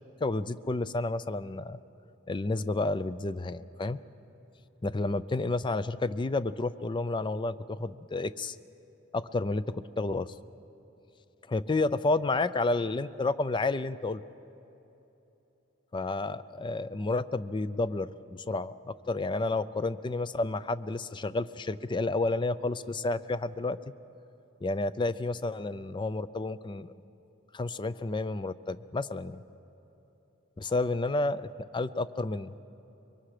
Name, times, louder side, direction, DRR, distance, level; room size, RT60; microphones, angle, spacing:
voice 1, 0.2-1.8 2.3-4.0 4.8-8.6 9.1-10.3 11.5-14.2 15.9-18.7 19.1-23.8 24.6-26.9 27.5-29.4 30.6-31.5 31.7-32.6, left 2 dB, 25° left, 15 dB, 0.4 m, -30 dB
25.5 x 23.0 x 5.0 m, 3.0 s
head